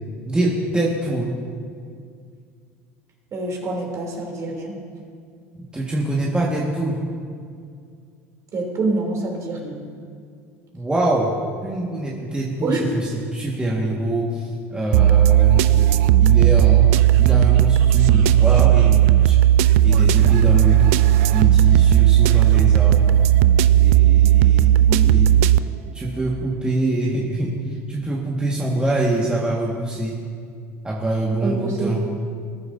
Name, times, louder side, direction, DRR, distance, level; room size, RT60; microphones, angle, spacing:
voice 1, 0.2-1.4 5.5-7.0 10.7-11.3 11.6-19.4 19.8-21.0 21.3-23.1 23.7-25.5 25.9-30.2 30.8-32.1, right 1 dB, 10° right, -4 dB, 1.8 m, -24 dB
voice 2, 3.3-4.7 8.5-9.8 12.6-12.8 24.9-25.1 31.4-31.9, right 3 dB, 45° right, -1 dB, 3.2 m, -26 dB
sound 1, 14.9-25.6, right 12 dB, 70° right, 0.3 m, -15 dB
20.5 x 9.7 x 2.7 m, 2.2 s
hypercardioid pair, 75°, 8 cm